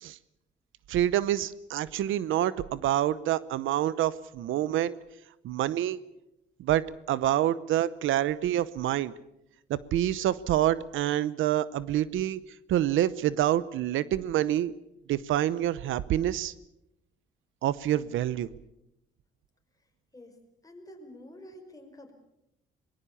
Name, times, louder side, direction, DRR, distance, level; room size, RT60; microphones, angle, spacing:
voice 1, 0.9-4.9 5.4-6.0 6.6-9.1 9.7-12.4 12.7-14.7 15.1-16.5 17.6-18.5, right 12 dB, 80° right, 18 dB, 0.8 m, -27 dB
voice 2, 20.6-22.1, left 1 dB, 15° left, 4 dB, 5.4 m, -48 dB
23.0 x 21.0 x 7.0 m, 0.84 s
cardioid pair, 90°, 20 cm